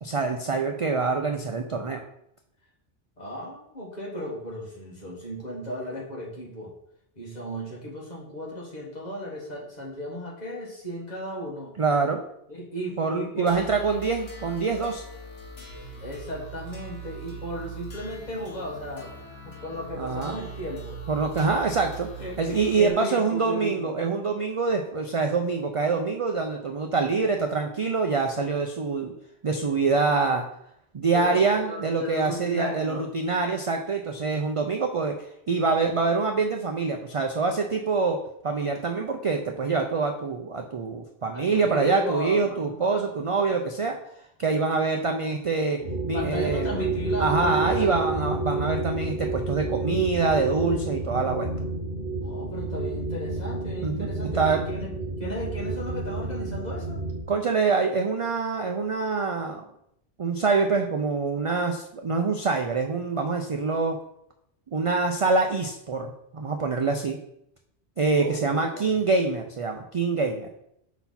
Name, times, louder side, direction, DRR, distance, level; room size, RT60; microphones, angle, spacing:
voice 1, 0.0-2.0 11.8-12.2 13.0-15.0 20.0-20.4 21.1-22.1 22.4-29.1 29.4-30.4 30.9-38.2 38.4-44.0 44.4-45.8 46.1-46.7 47.2-51.5 53.8-54.6 57.3-59.7 60.2-64.0 64.7-67.2 68.0-70.5, right 4 dB, 50° right, 3 dB, 0.4 m, -25 dB
voice 2, 3.2-6.7 7.1-11.8 12.5-13.6 16.0-19.1 19.4-21.0 22.2-23.9 31.1-33.0 41.3-43.0 46.1-47.9 52.2-57.1 68.2-69.0, equal, 40° left, -4 dB, 1.7 m, -35 dB
sound 1, 13.5-22.9, right 3 dB, 70° left, 1.4 m, -41 dB
sound 2, 45.8-57.2, right 2 dB, 65° right, 1.3 m, -30 dB
5.7 x 4.1 x 4.1 m, 0.74 s
omnidirectional pair, 1.1 m